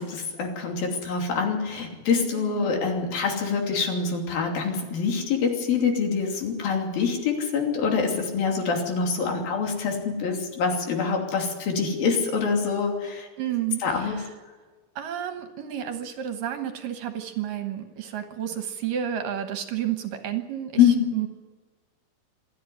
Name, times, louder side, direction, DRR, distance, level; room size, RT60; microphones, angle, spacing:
voice 1, 0.0-13.3 13.8-14.2 20.8-21.1, left 5 dB, 65° left, 2 dB, 4.6 m, -25 dB
voice 2, 2.3-2.8 13.4-14.3 15.0-21.3, right 10 dB, 65° right, 7 dB, 2.6 m, -31 dB
26.5 x 11.0 x 9.9 m, 1.3 s
omnidirectional pair, 4.5 m